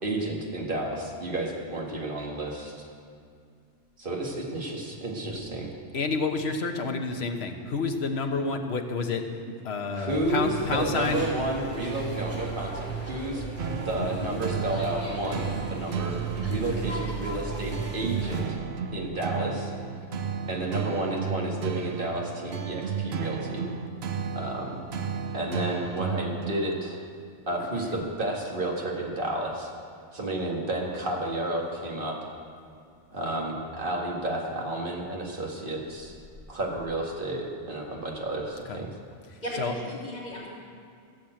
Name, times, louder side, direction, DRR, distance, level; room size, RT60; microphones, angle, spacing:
voice 1, 0.0-2.8 4.0-5.7 9.9-13.5 13.8-16.2 16.5-18.5 18.9-19.7 20.5-23.7 24.3-24.8 25.3-27.0 27.5-29.7 30.1-32.1 33.1-36.1 36.5-38.9, right 1 dB, 55° right, -1 dB, 2.1 m, -31 dB
voice 2, 5.9-9.3 9.6-11.2 14.0-14.1 27.7-27.9 38.7-38.8 39.3-39.7, left 4 dB, 75° left, 5 dB, 1.3 m, -29 dB
sound 1, 10.1-18.4, right 3 dB, 15° right, 2.9 m, -36 dB
sound 2, 13.6-27.1, right 6 dB, 80° right, 1.0 m, -33 dB
voice 3, 39.4-40.5, equal, 40° left, -7 dB, 3.6 m, -35 dB
15.5 x 7.3 x 7.7 m, 2.3 s
omnidirectional pair, 1.1 m